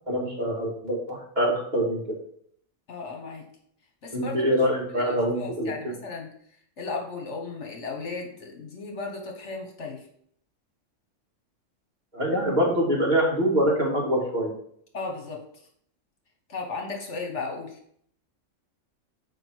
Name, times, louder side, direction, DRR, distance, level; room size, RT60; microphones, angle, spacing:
voice 1, 0.1-2.2 4.1-5.9 12.1-14.5, equal, 35° right, -4 dB, 2.4 m, -25 dB
voice 2, 2.9-3.4 4.0-4.5 5.1-6.3 6.8-10.0 14.9-15.4 16.5-17.8, left 4 dB, 65° left, 1 dB, 1.6 m, -35 dB
7.4 x 5.1 x 4.6 m, 0.65 s
omnidirectional pair, 1.3 m